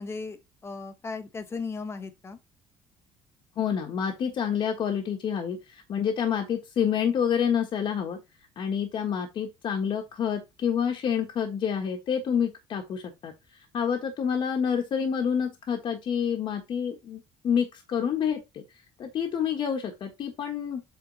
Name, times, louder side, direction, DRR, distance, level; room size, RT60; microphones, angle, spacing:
voice 1, 0.0-2.4, left 4 dB, 25° left, 1.3 m, -36 dB
voice 2, 3.6-8.2 8.6-18.6 19.0-21.0, left 7 dB, 45° left, 1.4 m, -28 dB
8.1 x 3.8 x 4.0 m
cardioid pair, 135°, 11 cm